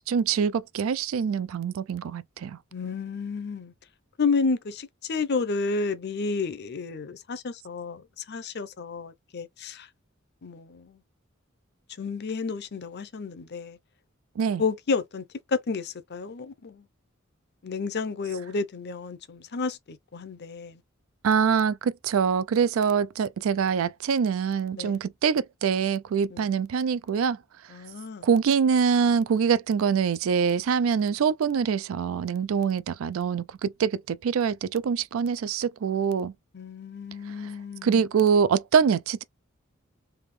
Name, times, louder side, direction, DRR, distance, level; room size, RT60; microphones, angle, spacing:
voice 1, 0.1-2.6 14.4-14.6 21.2-27.4 28.2-36.3 37.8-39.2, right 6 dB, 75° right, 0.4 m, -24 dB
voice 2, 2.7-3.7 4.2-9.9 10.4-11.0 12.0-13.8 14.6-16.9 17.6-20.8 24.7-25.0 26.3-26.5 27.7-28.3 36.5-38.0, left 4 dB, 55° left, 0.6 m, -31 dB
3.5 x 2.7 x 3.2 m
head